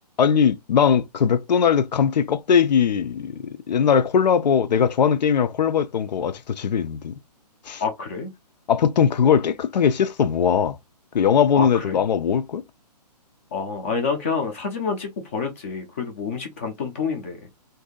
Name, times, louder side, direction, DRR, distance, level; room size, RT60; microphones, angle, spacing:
voice 1, 0.2-7.1 7.7-7.8 8.7-10.8 11.1-12.6, left 7 dB, 85° left, 0.5 m, -20 dB
voice 2, 7.8-8.3 11.5-12.0 13.5-17.4, left 5 dB, 20° left, 0.5 m, -28 dB
2.7 x 2.7 x 3.6 m
hypercardioid pair, 170°, 21 cm